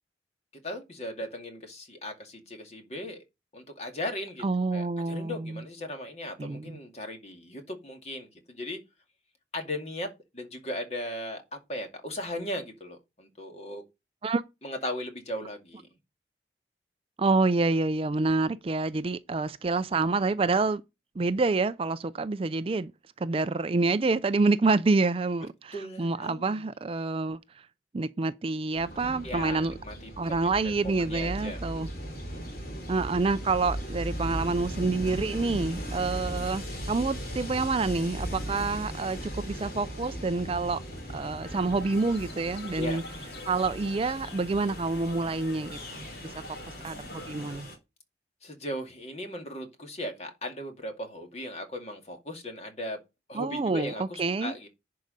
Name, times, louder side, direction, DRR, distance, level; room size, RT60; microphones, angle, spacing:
voice 1, 0.6-3.2 3.5-4.4 4.7-8.8 9.5-13.8 14.6-15.9 25.7-26.6 29.2-32.3 42.8-43.0 48.4-53.0 53.3-54.7, left 1 dB, 35° left, 2.3 m, -37 dB
voice 2, 4.4-5.6 6.4-6.8 14.2-14.4 17.2-20.8 21.2-22.9 23.2-27.7 27.9-29.7 30.2-31.9 32.9-40.8 41.1-43.0 43.5-46.3 46.7-47.7 53.3-54.5, right 3 dB, 30° right, 0.4 m, -27 dB
Train, 28.7-47.8, equal, 55° left, 3.4 m, -38 dB
sound 1, 41.4-47.6, left 1 dB, 70° left, 2.6 m, -44 dB
10.5 x 4.8 x 5.2 m
head